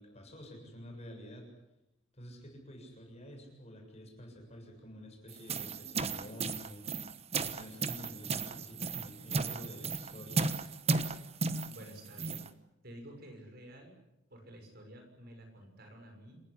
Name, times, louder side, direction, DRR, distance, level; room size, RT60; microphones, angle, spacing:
voice 1, 0.0-1.5 2.1-6.9 7.4-10.5, equal, 35° left, 2 dB, 7.3 m, -49 dB
sound 1, 5.3-12.5, right 4 dB, 30° right, 1.2 m, -35 dB
voice 2, 11.7-12.5 12.8-14.0 14.3-16.4, right 1 dB, 50° right, 4 dB, 6.5 m, -51 dB
27.5 x 16.5 x 9.9 m, 0.90 s
head